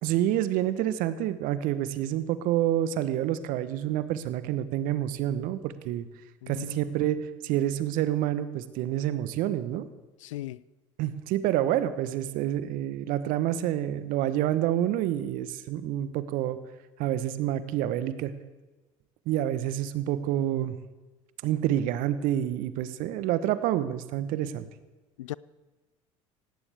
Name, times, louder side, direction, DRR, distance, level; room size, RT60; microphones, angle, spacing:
voice 1, 0.0-6.1 6.5-9.9 11.0-16.6 17.0-18.3 19.3-20.8 21.4-24.7, right 12 dB, 60° right, 1.1 m, -28 dB
voice 2, 6.4-6.8 10.2-10.6 25.2-25.3, left 15 dB, 75° left, 0.4 m, -38 dB
18.0 x 17.0 x 3.5 m
hypercardioid pair, 65°, 16 cm